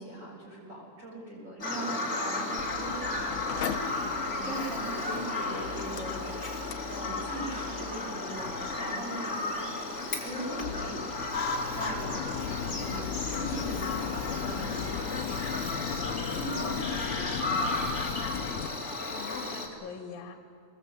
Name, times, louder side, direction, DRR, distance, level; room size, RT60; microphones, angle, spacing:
voice 1, 0.0-3.9 4.2-6.3 6.5-9.5 10.2-11.3 11.7-12.3 12.7-18.5, right 1 dB, 15° right, -3 dB, 7.1 m, -41 dB
Bird vocalization bird call bird song, 1.6-19.7, left 2 dB, 25° left, 1.8 m, -34 dB
Mechanical fan, 2.6-18.7, left 9 dB, 85° left, 1.7 m, -38 dB
voice 2, 3.8-4.2 19.1-20.4, left 6 dB, 60° left, 3 dB, 3.3 m, -43 dB
25.0 x 20.5 x 8.3 m, 2.2 s
omnidirectional pair, 5.0 m